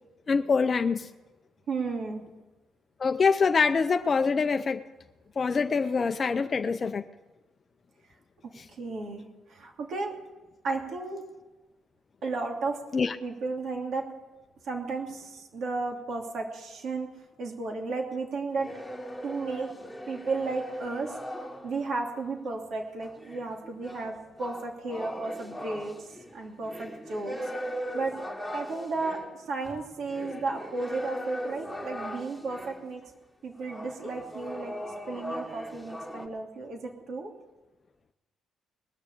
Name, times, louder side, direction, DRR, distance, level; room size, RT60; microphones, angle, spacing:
voice 1, 0.3-1.1 3.0-4.8 5.4-7.0 8.6-8.7 12.9-13.2 28.8-28.9, left 5 dB, 40° left, 7 dB, 0.5 m, -25 dB
voice 2, 1.7-2.2 8.8-10.2 10.6-11.2 12.2-12.8 13.2-14.1 14.6-17.1 17.4-18.8 19.2-19.7 20.1-21.2 21.6-27.4 27.9-28.1 28.5-33.0 33.4-34.7 35.1-37.3, right 3 dB, 65° right, 1 dB, 2.8 m, -33 dB
sound 1, 18.5-22.0 23.0-32.9 33.6-36.3, equal, 5° left, 2.3 m, -39 dB
20.0 x 6.8 x 8.2 m, 1.1 s
cardioid pair, 90°, 0 cm